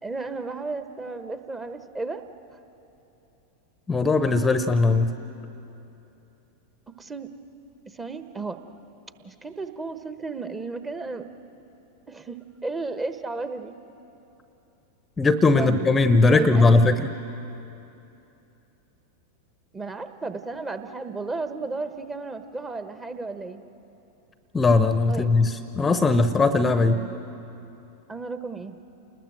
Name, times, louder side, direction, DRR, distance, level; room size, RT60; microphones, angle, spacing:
voice 1, 0.0-2.2 6.9-7.3 7.9-8.6 9.2-11.3 12.1-13.7 15.6-15.9 16.3-16.8 19.7-23.6 25.1-25.3 26.8-27.2 28.1-28.8, right 3 dB, 15° right, 9 dB, 1.2 m, -34 dB
voice 2, 3.9-5.1 15.2-17.1 24.5-27.0, left 3 dB, 15° left, 11 dB, 0.9 m, -19 dB
29.0 x 20.5 x 7.8 m, 2.9 s
figure-of-eight pair, 90°, 0 cm